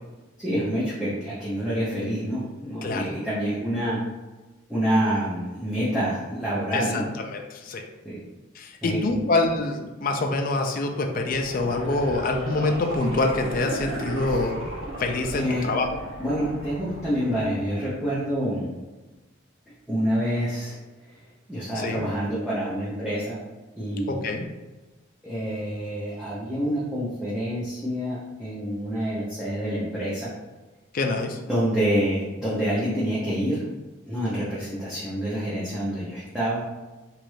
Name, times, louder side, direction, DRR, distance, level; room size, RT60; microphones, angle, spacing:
voice 1, 0.4-4.0 4.7-7.1 8.0-8.2 8.8-9.3 14.3-14.5 15.3-15.7 16.2-18.7 19.9-20.8 21.5-23.4 23.8-24.2 25.2-30.3 31.5-33.6 34.1-36.6, equal, 5° right, -10 dB, 0.6 m, -27 dB
voice 2, 2.8-3.1 6.7-7.0 7.3-7.8 8.6-14.6 15.0-15.9 21.7-22.0 24.1-24.5 30.9-31.4, left 2 dB, 40° left, 3 dB, 0.3 m, -25 dB
sound 1, 11.2-18.2 18.6-18.7, right 1 dB, 85° right, 1.0 m, -35 dB
3.0 x 2.5 x 3.1 m, 1.2 s
head